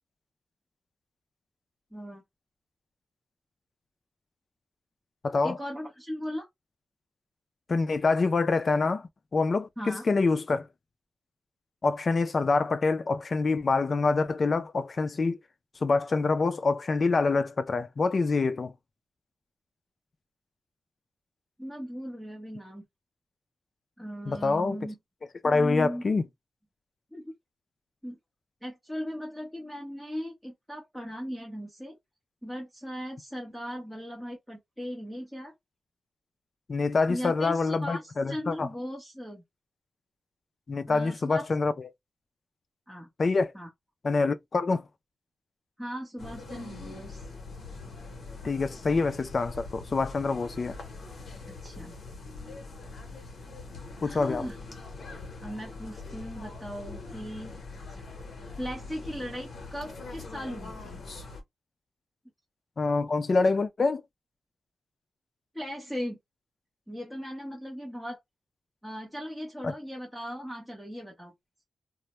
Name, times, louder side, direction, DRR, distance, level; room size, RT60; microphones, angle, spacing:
voice 1, 1.9-2.2 5.4-6.5 9.8-10.0 21.6-22.8 24.0-24.9 25.4-26.0 27.1-27.3 28.0-28.2 28.6-32.0 32.4-35.5 37.1-39.4 40.9-41.5 42.9-43.1 43.5-43.7 45.8-47.2 51.5-51.9 54.0-54.6 55.4-57.5 57.9-58.0 58.6-61.0 65.5-66.2 66.9-68.2 68.8-71.3, equal, 5° right, 0.7 m, -38 dB
voice 2, 5.2-5.6 7.7-10.7 11.8-15.4 15.8-18.7 24.3-24.8 25.4-26.3 36.7-38.7 40.7-41.9 43.2-43.5 44.0-44.8 48.4-50.8 54.0-54.5 62.8-64.0 69.6-69.7, left 3 dB, 40° left, 0.3 m, -26 dB
sound 1, 46.2-61.4, left 3 dB, 55° left, 0.8 m, -43 dB
2.1 x 2.0 x 2.8 m
wide cardioid pair, 105°, 0 cm